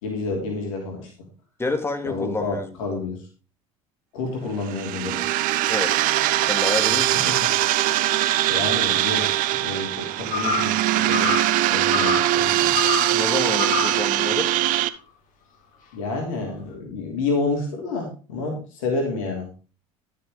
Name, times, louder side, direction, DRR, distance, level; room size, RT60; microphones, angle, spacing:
voice 1, 0.0-1.1 2.0-3.3 4.1-5.2 6.9-7.0 7.3-7.5 8.5-11.4 11.7-12.9 15.9-19.5, left 3 dB, 70° left, 1 dB, 3.2 m, -29 dB
voice 2, 1.6-2.7 5.7-6.0 6.4-7.4 13.1-14.5, left 3 dB, 15° left, 6 dB, 2.1 m, -28 dB
sound 1, 4.6-14.9, right 14 dB, 50° right, 0.7 m, -22 dB
sound 2, 10.3-10.8 11.1-11.5 11.9-12.3 12.7-13.2 13.6-14.0, left 5 dB, 50° left, 2.2 m, -26 dB
12.5 x 6.7 x 3.9 m, 0.35 s
hypercardioid pair, 70°, 18 cm